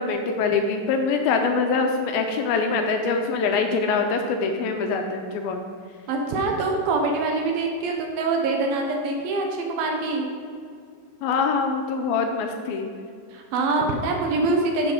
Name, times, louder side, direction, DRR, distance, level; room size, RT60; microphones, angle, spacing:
voice 1, 0.0-5.6 11.2-12.9, left 4 dB, 80° left, 4 dB, 2.3 m, -24 dB
voice 2, 6.1-10.3 13.3-14.9, right 3 dB, 75° right, 2 dB, 2.6 m, -24 dB
9.8 x 5.4 x 5.0 m, 2.2 s
omnidirectional pair, 4.6 m